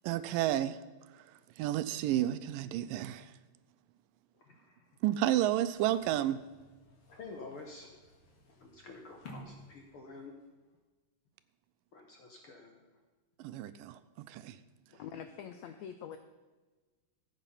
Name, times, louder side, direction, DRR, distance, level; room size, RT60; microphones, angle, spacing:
voice 1, 0.0-0.8 1.6-3.3 5.0-6.4 13.4-14.0 14.3-14.6, right 13 dB, 85° right, 14 dB, 2.2 m, -31 dB
voice 2, 4.4-4.8 7.2-7.9 8.6-10.3 11.9-12.9 14.9-15.0, left 3 dB, 60° left, 2 dB, 1.4 m, -49 dB
sound 1, 5.7-10.5, left 1 dB, 45° left, 2.4 m, -55 dB
voice 3, 15.0-16.2, left 8 dB, 90° left, 9 dB, 1.5 m, -44 dB
14.5 x 8.4 x 5.6 m, 1.3 s
omnidirectional pair, 4.0 m